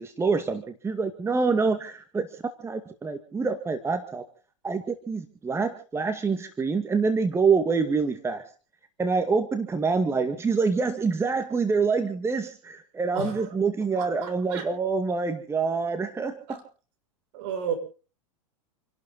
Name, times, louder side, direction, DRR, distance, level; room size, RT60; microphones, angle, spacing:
voice 1, 0.0-4.2 4.6-8.4 9.0-16.6, right 4 dB, 15° right, 2.1 m, -26 dB
voice 2, 13.1-13.5 13.9-14.7 16.5-16.6 17.3-17.8, right 7 dB, 60° right, 6.7 m, -33 dB
29.0 x 12.0 x 4.0 m
hypercardioid pair, 110°, 17 cm